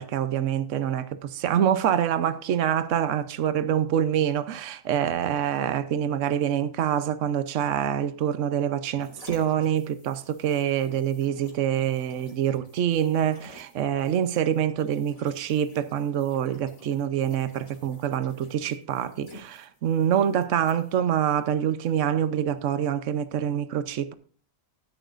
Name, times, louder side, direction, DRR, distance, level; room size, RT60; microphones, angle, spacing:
voice 1, 0.0-24.1, right 9 dB, 65° right, 1.1 m, -26 dB
sound 1, 8.9-22.3 22.7-22.8, equal, 75° left, 5.0 m, -51 dB
15.5 x 9.0 x 2.5 m
omnidirectional pair, 1.4 m